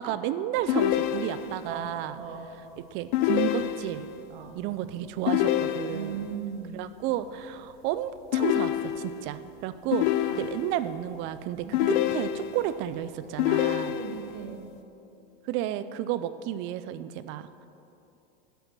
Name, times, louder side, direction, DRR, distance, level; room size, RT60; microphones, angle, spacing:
voice 1, 0.0-2.2 2.9-4.1 4.5-6.3 6.7-10.1 10.4-13.9 15.4-17.7, right 12 dB, 40° right, 13 dB, 0.5 m, -32 dB
sound 1, 0.7-1.7 3.1-4.2 5.3-6.3 8.3-9.3 9.9-10.9 11.7-12.8 13.4-14.4, left 13 dB, 55° left, 0.6 m, -27 dB
voice 2, 1.4-1.9 2.2-2.5 4.3-4.6 5.9-6.9 10.2-10.5 11.6-12.1 13.8-14.7, right 7 dB, 70° right, 4 dB, 1.6 m, -39 dB
11.5 x 7.9 x 6.1 m, 2.8 s
supercardioid pair, 130°, 30 cm